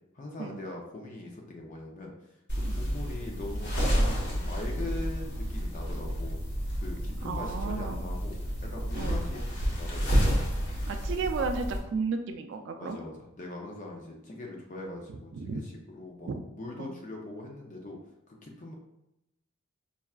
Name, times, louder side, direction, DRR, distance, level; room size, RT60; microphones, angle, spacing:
voice 1, 0.1-2.1 2.5-6.4 6.8-8.4 8.6-10.4 12.8-18.0 18.3-18.7, left 2 dB, 40° left, 0 dB, 0.5 m, -41 dB
sound 1, 2.5-11.8, equal, 55° left, 1.0 m, -30 dB
voice 2, 7.2-8.0 8.9-9.2 10.9-13.0 15.1-15.6 16.2-16.4 16.8-16.9, right 4 dB, 60° right, 5 dB, 0.3 m, -34 dB
5.4 x 2.3 x 2.3 m, 0.86 s
head